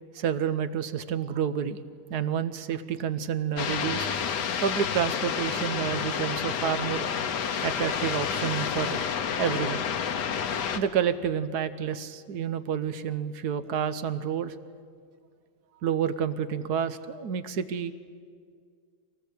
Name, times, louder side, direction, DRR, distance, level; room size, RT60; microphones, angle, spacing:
voice 1, 0.1-1.8 2.1-4.1 4.6-7.1 7.6-9.0 9.4-9.8 10.8-14.5 15.8-17.9, right 8 dB, 65° right, 13 dB, 1.3 m, -29 dB
sound 1, 3.6-10.8, left 7 dB, 65° left, 1.6 m, -29 dB
24.5 x 18.5 x 8.4 m, 2.1 s
omnidirectional pair, 2.1 m